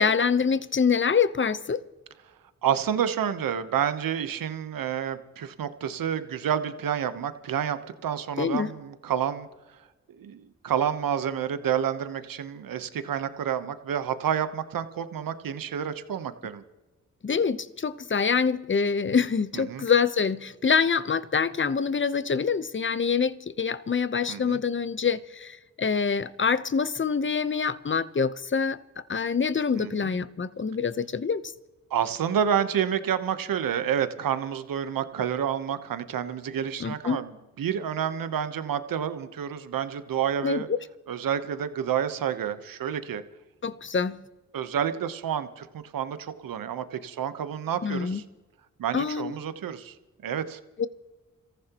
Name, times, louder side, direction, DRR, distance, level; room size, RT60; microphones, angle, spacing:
voice 1, 0.0-1.8 8.4-8.7 17.2-28.8 29.1-31.4 36.8-37.2 40.4-40.6 43.6-44.2 47.8-48.2 48.9-49.3 50.8-50.9, left 6 dB, 35° left, 0.9 m, -25 dB
voice 2, 2.6-9.5 10.2-16.6 19.5-19.9 24.3-24.6 29.8-30.1 31.9-40.7 41.1-43.2 44.5-48.2 48.8-49.9 50.2-50.6, right 8 dB, 75° right, 1.1 m, -29 dB
28.5 x 14.5 x 3.0 m
supercardioid pair, 45°, 34 cm